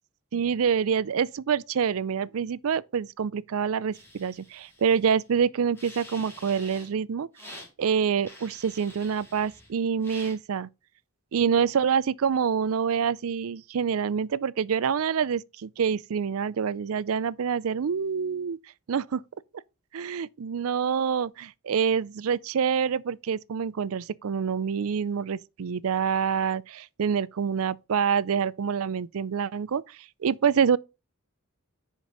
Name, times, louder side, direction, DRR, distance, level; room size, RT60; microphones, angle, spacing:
voice 1, 0.3-7.3 7.8-10.7 11.3-18.6 18.9-19.2 19.9-29.8 30.2-30.8, right 7 dB, 75° right, 0.4 m, -26 dB
sound 1, 3.9-5.2 5.7-6.9 7.3-7.7 8.2-9.7 10.0-10.4, left 1 dB, 10° left, 3.0 m, -47 dB
10.0 x 5.2 x 3.9 m
head